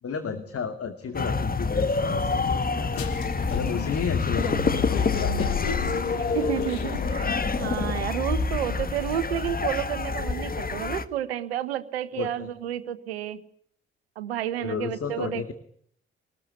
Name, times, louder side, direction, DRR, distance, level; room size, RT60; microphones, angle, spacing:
voice 1, 0.0-2.9 3.5-5.7 12.1-12.5 14.6-15.5, left 6 dB, 50° left, 8 dB, 2.4 m, -33 dB
sound 1, 1.1-11.0, left 4 dB, 30° left, 1.7 m, -27 dB
sound 2, 2.9-8.5, left 7 dB, 85° left, 1.6 m, -32 dB
voice 2, 6.3-7.3 7.6-13.4 14.2-15.5, right 11 dB, 90° right, 13 dB, 1.2 m, -31 dB
25.5 x 19.5 x 9.8 m, 0.66 s
hypercardioid pair, 40°, 30 cm